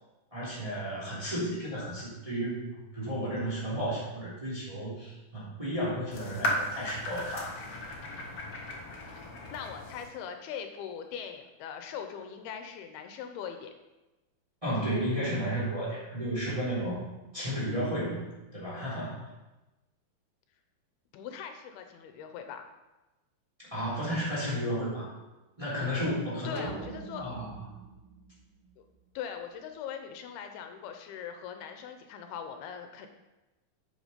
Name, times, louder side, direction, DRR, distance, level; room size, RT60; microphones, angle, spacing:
voice 1, 0.3-7.5 14.6-17.1 17.3-19.2 23.7-25.1 25.6-26.7 27.2-27.5, equal, 10° right, -8 dB, 2.8 m, -33 dB
sound 1, 6.1-10.1, left 1 dB, 55° left, 1.7 m, -36 dB
voice 2, 9.5-13.7 21.1-22.7 26.4-27.4 28.8-28.9 29.2-33.1, left 8 dB, 85° left, 6 dB, 2.7 m, -41 dB
sound 2, 26.6-29.0, right 5 dB, 75° right, 2.2 m, -44 dB
8.3 x 7.2 x 5.2 m, 1.0 s
omnidirectional pair, 4.4 m